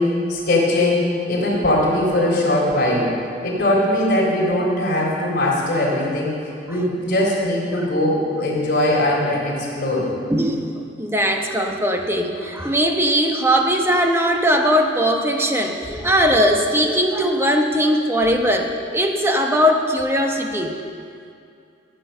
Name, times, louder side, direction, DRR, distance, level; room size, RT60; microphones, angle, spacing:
voice 1, 0.0-3.1 3.4-6.3 6.7-10.1, left 1 dB, 50° left, -3 dB, 3.9 m, -20 dB
voice 2, 10.3-10.6 11.0-20.8, equal, 15° right, 3 dB, 1.0 m, -19 dB
15.0 x 8.9 x 6.8 m, 2.4 s
head